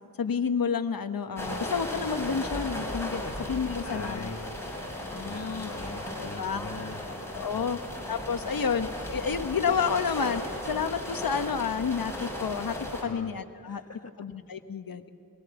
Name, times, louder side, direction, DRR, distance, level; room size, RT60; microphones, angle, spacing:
voice 1, 0.2-4.3 5.0-5.8 6.2-6.7 7.3-7.8 8.1-12.7 13.0-13.8 14.2-15.1, left 6 dB, 75° left, 8 dB, 1.2 m, -30 dB
sound 1, 1.4-13.0, left 1 dB, 5° left, 6.6 m, -36 dB
voice 2, 3.8-4.5 5.2-7.0 7.3-7.8 13.0-13.3 13.7-14.1, left 3 dB, 45° left, 6 dB, 1.5 m, -42 dB
23.0 x 18.0 x 7.0 m, 2.7 s
wide cardioid pair, 80°, 35 cm